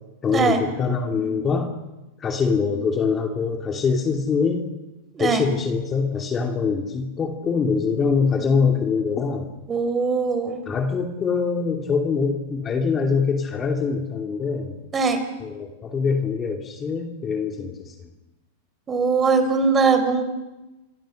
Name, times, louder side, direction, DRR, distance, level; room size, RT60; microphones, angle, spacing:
voice 1, 0.2-1.7 2.2-4.7 5.2-9.5 10.7-14.7 15.4-17.9, left 5 dB, 25° left, 4 dB, 2.7 m, -24 dB
voice 2, 9.7-10.6 14.9-15.2 18.9-20.2, right 4 dB, 20° right, 8 dB, 4.3 m, -20 dB
28.0 x 23.5 x 6.6 m, 1.1 s
hypercardioid pair, 130°, 0 cm